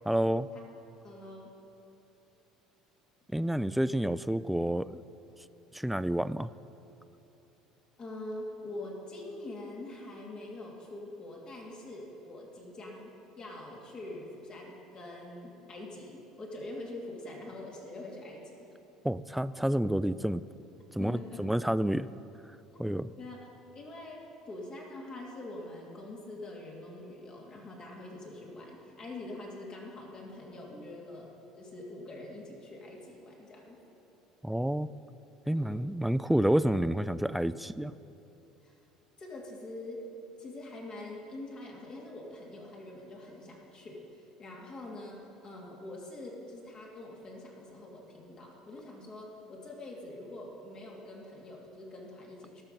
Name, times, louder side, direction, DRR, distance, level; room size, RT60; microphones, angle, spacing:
voice 1, 0.1-0.5 3.3-5.0 5.7-6.5 19.0-20.4 20.9-22.1 22.8-23.1 34.4-34.9 35.5-37.9, right 1 dB, 5° right, 16 dB, 0.3 m, -29 dB
voice 2, 1.0-1.5 8.0-18.6 21.0-21.4 23.2-31.3 31.6-34.0 35.5-35.8 38.6-38.8 39.2-40.1 40.4-52.6, left 2 dB, 35° left, -2 dB, 2.7 m, -44 dB
17.5 x 7.0 x 5.3 m, 2.9 s
figure-of-eight pair, 60°, 3 cm